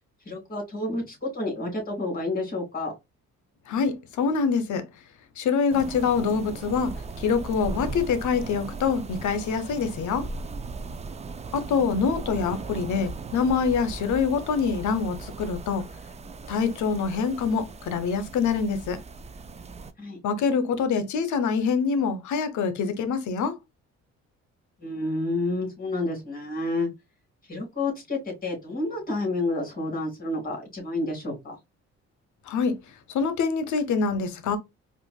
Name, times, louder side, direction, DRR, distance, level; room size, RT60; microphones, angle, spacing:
voice 1, 0.3-2.9 20.0-20.2 24.8-26.9 27.5-31.6, left 2 dB, 30° left, 2.4 m, -29 dB
voice 2, 3.7-4.8 5.4-10.3 11.5-15.9 16.5-19.0 20.2-23.6 32.5-32.8 33.1-34.6, left 5 dB, 75° left, 0.8 m, -25 dB
sound 1, 5.7-19.9, right 4 dB, 25° right, 0.4 m, -38 dB
4.5 x 2.5 x 2.3 m
cardioid pair, 90°, 30 cm